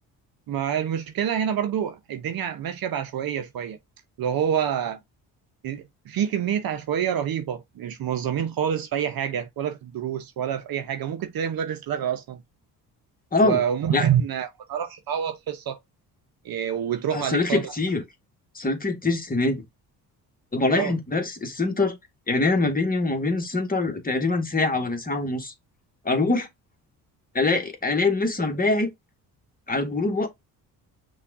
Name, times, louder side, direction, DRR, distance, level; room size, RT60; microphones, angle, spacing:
voice 1, 0.5-3.8 4.2-5.0 5.6-12.4 13.4-15.8 16.4-17.7 20.7-20.9, right 9 dB, 60° right, 0.8 m, -27 dB
voice 2, 13.3-13.6 13.9-14.0 17.1-18.0 18.5-19.6 20.5-22.0 22.3-25.5 26.0-26.5 27.3-28.9 29.7-30.3, left 3 dB, 20° left, 1.3 m, -24 dB
5.7 x 2.5 x 3.5 m
supercardioid pair, 70°, 41 cm